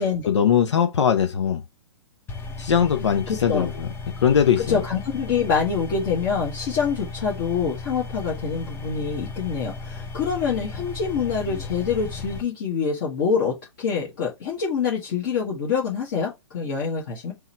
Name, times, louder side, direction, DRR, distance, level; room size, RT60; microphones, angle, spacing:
voice 1, 0.3-1.6 2.6-3.9 4.2-4.8, left 8 dB, 70° left, 0.6 m, -20 dB
sound 1, 2.3-12.4, left 3 dB, 15° left, 0.7 m, -35 dB
voice 2, 3.3-3.7 4.6-17.3, left 6 dB, 45° left, 1.4 m, -26 dB
3.6 x 3.1 x 4.3 m
figure-of-eight pair, 120°, 15 cm